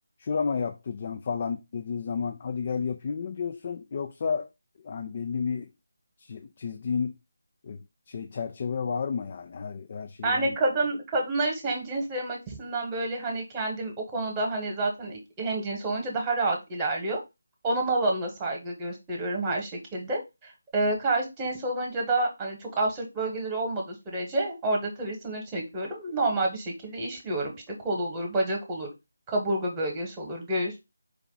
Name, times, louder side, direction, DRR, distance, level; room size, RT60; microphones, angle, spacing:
voice 1, 0.2-4.5 4.8-5.7 6.2-7.1 7.6-10.6, left 5 dB, 40° left, 0.4 m, -31 dB
voice 2, 10.2-17.2 17.6-28.9 29.3-30.8, right 2 dB, 15° right, 1.2 m, -29 dB
4.7 x 2.4 x 3.9 m
figure-of-eight pair, 160°, 0 cm